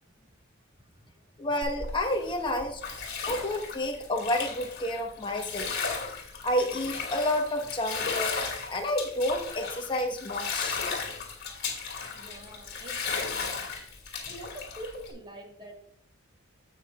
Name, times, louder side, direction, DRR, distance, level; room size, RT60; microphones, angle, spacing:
voice 1, 1.4-2.8 3.3-5.7 6.4-8.3 8.7-10.8, left 1 dB, 25° left, 3 dB, 1.1 m, -30 dB
Bathtub (filling or washing), 1.6-15.1, left 5 dB, 50° left, 2.5 m, -35 dB
voice 2, 12.1-13.7 14.3-15.8, right 1 dB, 20° right, 2 dB, 1.6 m, -45 dB
16.0 x 5.9 x 2.4 m, 0.68 s
head